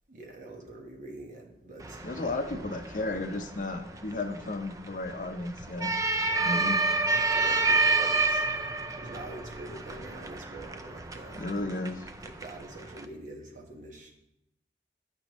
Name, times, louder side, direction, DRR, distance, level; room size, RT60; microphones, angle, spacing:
voice 1, 0.1-2.1 6.3-6.8 7.1-8.5 9.0-11.5 12.2-14.2, right 2 dB, 45° right, 1 dB, 1.2 m, -45 dB
sound 1, 1.8-13.1, right 3 dB, 20° right, 0.4 m, -30 dB
voice 2, 2.0-5.9 6.4-6.8 11.3-12.0, left 2 dB, 45° left, 5 dB, 0.6 m, -33 dB
10.5 x 6.1 x 3.0 m, 0.84 s
head